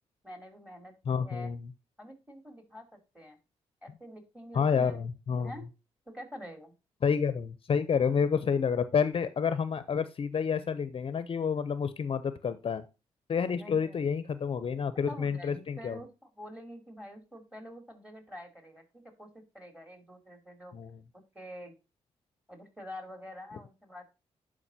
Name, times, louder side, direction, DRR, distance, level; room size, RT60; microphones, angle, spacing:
voice 1, 0.2-1.5 2.0-3.4 3.8-5.0 5.4-5.7 6.1-6.7 13.5-14.0 15.1-20.8 21.1-21.8 22.5-24.1, equal, 10° right, 4 dB, 3.0 m, -47 dB
voice 2, 1.1-1.7 4.5-5.5 7.0-12.8 13.3-16.0 20.7-20.9, left 6 dB, 50° left, 14 dB, 0.6 m, -29 dB
11.0 x 5.0 x 2.7 m, 0.29 s
cardioid pair, 75°, 12 cm